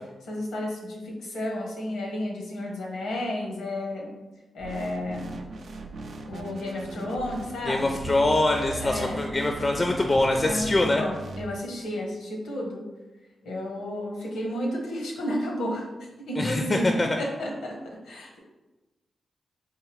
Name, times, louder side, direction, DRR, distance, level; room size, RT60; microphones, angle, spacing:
voice 1, 0.2-4.1 4.5-5.4 6.3-7.9 8.8-9.2 10.4-12.9 13.4-15.9 16.2-17.8 18.0-18.4, left 1 dB, 85° left, -1 dB, 0.7 m, -32 dB
sound 1, 4.6-11.5, right 2 dB, 70° right, 0.3 m, -38 dB
voice 2, 7.7-11.0 16.4-17.1, left 2 dB, 40° left, 3 dB, 0.4 m, -24 dB
3.6 x 2.8 x 3.1 m, 1.1 s
supercardioid pair, 40°, 0 cm